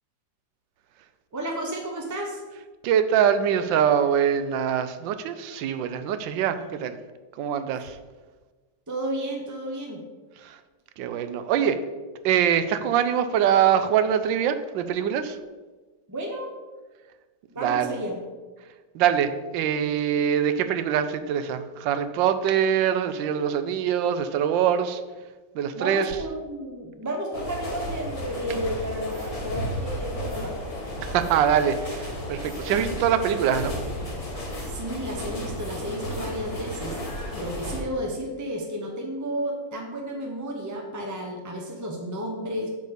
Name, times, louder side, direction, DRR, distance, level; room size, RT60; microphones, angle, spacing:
voice 1, 1.3-2.4 7.8-7.9 8.9-10.0 16.1-16.5 17.5-18.1 25.7-30.5 34.7-37.0 37.3-42.7, equal, 20° right, 0 dB, 0.5 m, -32 dB
voice 2, 2.8-7.0 7.4-8.0 10.4-10.6 11.0-11.8 12.2-15.4 17.6-18.0 18.9-25.0 25.5-26.1 31.0-33.7, right 8 dB, 80° right, 10 dB, 1.3 m, -23 dB
sound 1, 27.3-37.8, equal, 20° left, 1.1 m, -33 dB
8.2 x 4.1 x 6.7 m, 1.3 s
omnidirectional pair, 2.0 m